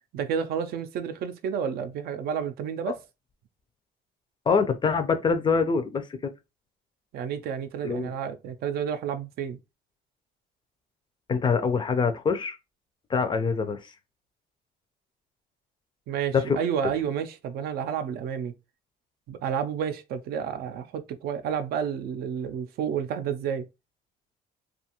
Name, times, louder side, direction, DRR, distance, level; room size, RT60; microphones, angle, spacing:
voice 1, 0.1-3.0 7.1-9.6 16.1-18.5 19.3-23.7, right 8 dB, 70° right, 0.4 m, -30 dB
voice 2, 4.5-6.0 7.8-8.1 11.3-12.6 13.1-13.9 16.3-16.6, left 5 dB, 30° left, 0.4 m, -24 dB
2.6 x 2.3 x 2.8 m
cardioid pair, 110°, 17 cm